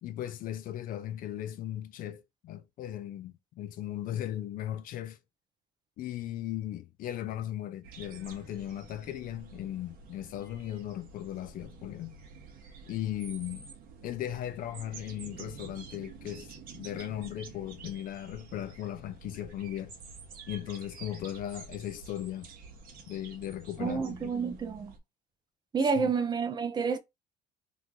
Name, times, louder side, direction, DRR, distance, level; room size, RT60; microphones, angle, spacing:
voice 1, 0.0-5.2 6.0-12.2 12.9-13.7 14.0-19.9 20.5-22.5 23.1-24.3 26.0-26.1, left 12 dB, 50° left, 0.5 m, -37 dB
sound 1, 7.8-25.0, right 5 dB, 55° right, 1.1 m, -49 dB
voice 2, 23.8-24.9 25.7-27.0, right 5 dB, 25° right, 0.6 m, -29 dB
3.0 x 2.6 x 3.6 m
cardioid pair, 130°, 18 cm